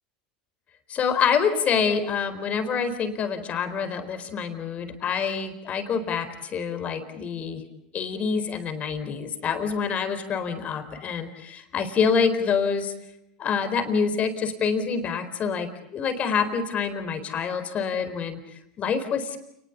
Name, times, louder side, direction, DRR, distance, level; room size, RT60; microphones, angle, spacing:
voice 1, 0.9-7.6 7.9-12.9 13.4-19.4, left 6 dB, 40° left, 10 dB, 4.3 m, -26 dB
29.5 x 20.5 x 8.4 m, 0.80 s
hypercardioid pair, 95°, 4 cm